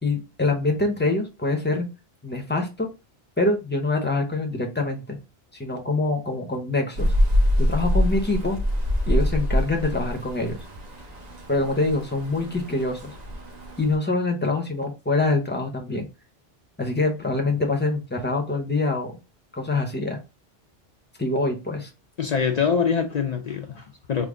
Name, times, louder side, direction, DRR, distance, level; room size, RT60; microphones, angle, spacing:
voice 1, 0.0-1.9 2.2-2.9 3.4-5.2 5.6-7.1 7.6-8.6 9.1-10.6 11.5-13.1 13.8-16.1 16.8-19.2 19.5-20.2 21.2-21.9, left 2 dB, 10° left, 0.6 m, -25 dB
Rain, 7.0-14.0, left 1 dB, 45° right, 0.9 m, -25 dB
voice 2, 22.2-24.3, left 6 dB, 50° left, 0.5 m, -24 dB
3.6 x 2.1 x 3.6 m
omnidirectional pair, 1.0 m